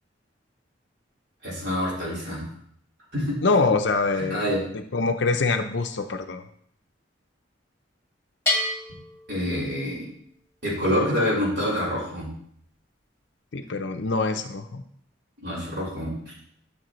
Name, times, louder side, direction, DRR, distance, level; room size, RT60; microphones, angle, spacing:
voice 1, 1.4-2.5 3.1-3.4 4.3-4.6 9.3-10.1 10.6-12.3 15.4-16.1, left 1 dB, 60° right, -6 dB, 4.0 m, -26 dB
voice 2, 3.4-6.4 13.5-14.8, left 3 dB, 65° left, 6 dB, 0.6 m, -25 dB
Bell, 8.5-10.2, left 2 dB, 15° left, 1.6 m, -29 dB
11.5 x 6.8 x 3.1 m, 0.66 s
head